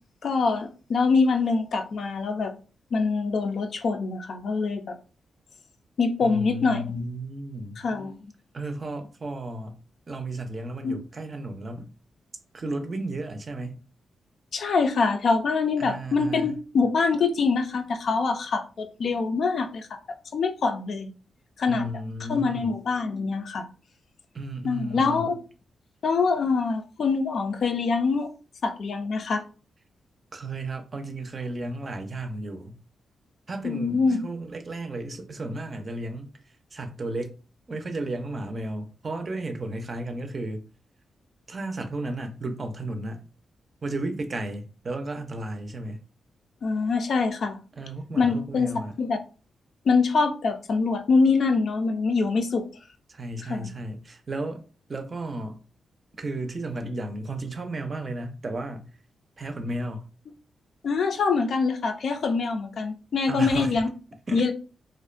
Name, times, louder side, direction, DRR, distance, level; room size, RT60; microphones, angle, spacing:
voice 1, 0.2-2.5 2.9-5.0 6.0-7.0 7.8-8.2 10.8-11.0 14.5-20.0 20.3-21.1 21.6-21.9 22.3-23.7 24.6-25.4 26.0-28.3 28.6-29.4 33.6-34.2 46.6-47.6 48.2-48.7 49.0-49.2 49.9-52.6 53.5-53.7 60.8-63.9 64.3-64.5, left 4 dB, 65° left, 0.4 m, -24 dB
voice 2, 6.2-7.8 8.5-9.8 10.1-11.9 12.5-13.8 15.8-16.5 21.7-22.7 24.3-25.3 30.3-32.8 33.5-36.3 36.7-37.4 37.7-40.6 41.5-43.2 43.8-46.0 47.8-49.0 53.1-54.6 54.9-55.6 56.2-58.9 59.4-60.1 63.3-63.8 64.3-64.5, right 2 dB, 45° right, 0.5 m, -33 dB
2.4 x 2.1 x 2.4 m
cardioid pair, 65°, 0 cm